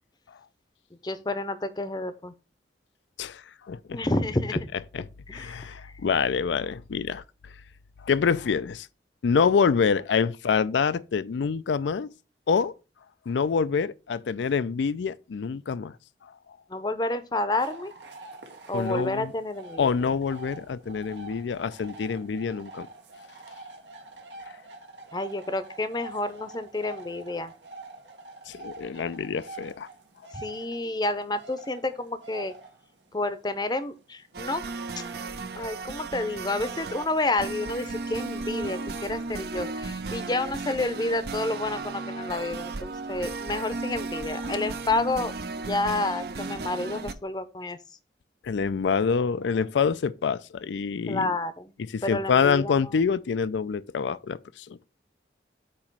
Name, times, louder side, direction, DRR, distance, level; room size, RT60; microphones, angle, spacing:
voice 1, 1.0-2.3 3.9-4.7 5.3-5.9 16.7-17.9 18.7-20.1 25.1-27.5 30.3-32.5 33.1-34.6 35.0-35.1 35.5-47.8 51.1-51.7 52.0-52.9, left 2 dB, 25° left, 0.6 m, -30 dB
voice 2, 3.2-3.8 5.3-7.2 8.0-8.9 9.2-12.1 12.5-12.7 13.3-15.9 16.2-16.3 18.7-19.3 19.8-22.9 28.5-29.9 48.4-51.3 51.9-54.8, left 6 dB, 85° left, 0.4 m, -26 dB
sound 1, 17.6-36.1, right 2 dB, 90° right, 1.5 m, -46 dB
sound 2, 34.3-47.1, right 3 dB, 60° right, 0.6 m, -35 dB
8.4 x 3.0 x 5.9 m
head